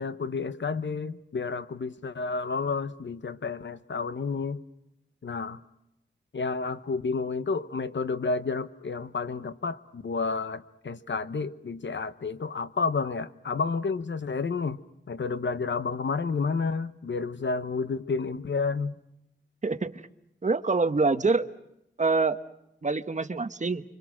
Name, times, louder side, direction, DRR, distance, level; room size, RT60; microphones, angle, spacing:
voice 1, 0.0-4.6 5.2-5.6 6.3-14.8 15.1-18.9, left 4 dB, 65° left, 1.1 m, -30 dB
voice 2, 19.6-20.0 20.4-21.5 22.0-22.4 22.8-23.8, right 3 dB, 40° right, 1.2 m, -25 dB
30.0 x 25.0 x 6.2 m
wide cardioid pair, 80°, 20 cm